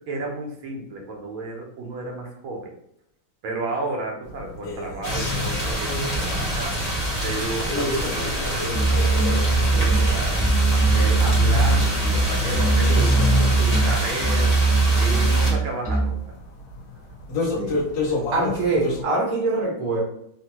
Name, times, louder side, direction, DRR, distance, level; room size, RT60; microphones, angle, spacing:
voice 1, 0.1-2.7 3.4-6.8 7.2-10.4 10.9-14.6 15.0-16.2, right 2 dB, 75° right, 0 dB, 1.5 m, -32 dB
sound 1, 4.2-19.0, left 2 dB, 70° left, 1.3 m, -33 dB
sound 2, 5.0-15.5, left 1 dB, 50° left, 0.5 m, -26 dB
Musical instrument, 8.7-16.3, right 3 dB, 10° left, 1.0 m, -20 dB
voice 2, 17.3-17.8 18.3-20.0, right 3 dB, 45° right, -4 dB, 0.4 m, -24 dB
4.0 x 2.1 x 2.8 m, 0.72 s
omnidirectional pair, 2.3 m